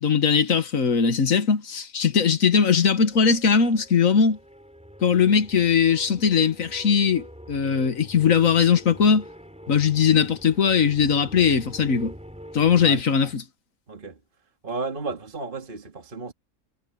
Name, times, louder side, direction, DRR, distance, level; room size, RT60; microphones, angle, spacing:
voice 1, 0.0-4.4 5.0-9.2 9.7-12.1 12.5-13.4, left 6 dB, 65° left, 1.8 m, -20 dB
sound 1, 2.9-13.0, equal, 5° right, 6.0 m, -44 dB
voice 2, 12.8-13.3 13.9-14.2 14.6-16.3, right 3 dB, 35° right, 2.2 m, -33 dB
omnidirectional pair, 1.5 m